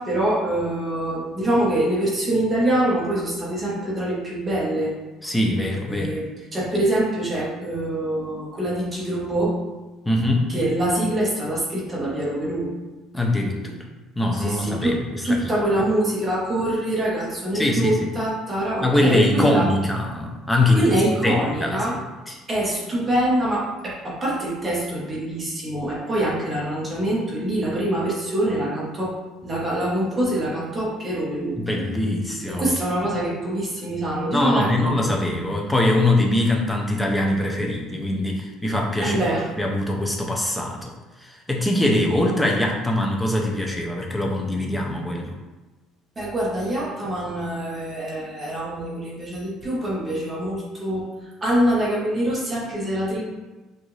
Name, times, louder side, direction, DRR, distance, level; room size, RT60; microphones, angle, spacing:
voice 1, 0.0-4.9 5.9-9.6 10.5-12.7 14.3-15.0 15.2-19.7 20.7-22.0 22.5-29.2 29.4-31.6 32.5-34.9 39.0-39.4 46.2-51.1 51.4-53.2, right 1 dB, 15° right, -6 dB, 1.1 m, -24 dB
voice 2, 5.2-6.1 10.1-10.5 13.1-13.8 14.2-15.4 17.5-18.1 18.8-20.9 21.2-21.9 22.3-22.4 31.6-32.7 34.3-39.2 39.6-40.9 41.2-45.4, left 1 dB, 5° left, 0 dB, 0.5 m, -22 dB
6.2 x 2.5 x 3.2 m, 1.2 s
cardioid pair, 175°, 0 cm